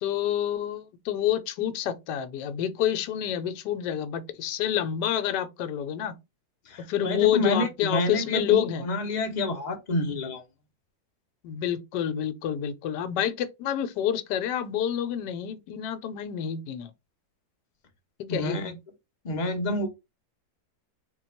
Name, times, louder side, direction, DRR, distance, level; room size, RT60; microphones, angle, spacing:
voice 1, 0.0-6.2 6.8-8.9 11.4-16.9 18.2-18.7, left 10 dB, 75° left, 1.2 m, -28 dB
voice 2, 6.7-10.4 18.3-18.8 19.2-19.9, left 1 dB, 50° left, 0.5 m, -29 dB
4.0 x 2.3 x 4.2 m
omnidirectional pair, 1.9 m